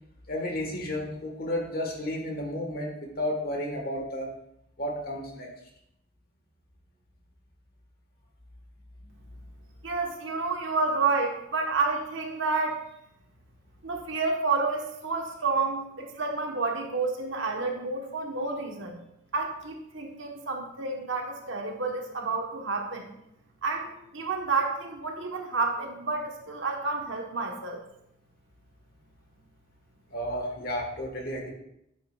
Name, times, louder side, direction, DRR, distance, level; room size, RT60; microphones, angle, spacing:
voice 1, 0.3-4.3 4.8-5.5 30.1-31.5, left 1 dB, 45° left, 1 dB, 1.6 m, -32 dB
voice 2, 9.8-12.8 13.8-19.0 19.3-23.1 23.6-27.8, right 3 dB, 70° right, 2 dB, 1.3 m, -30 dB
10.5 x 7.6 x 2.5 m, 0.80 s
head